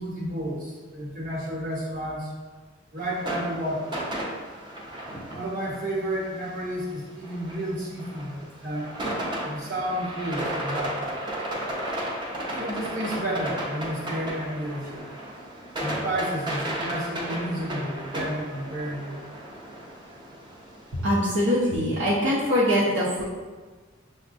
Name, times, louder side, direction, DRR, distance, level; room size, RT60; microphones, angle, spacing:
voice 1, 0.0-2.3 2.9-4.0 5.3-8.9 9.4-11.2 12.6-15.1 15.8-19.2, equal, 45° right, -4 dB, 1.0 m, -31 dB
sound 1, 3.0-21.5, right 1 dB, 25° right, 0.6 m, -34 dB
voice 2, 20.9-23.2, equal, 75° right, -9 dB, 0.8 m, -23 dB
6.3 x 2.1 x 2.6 m, 1.4 s
head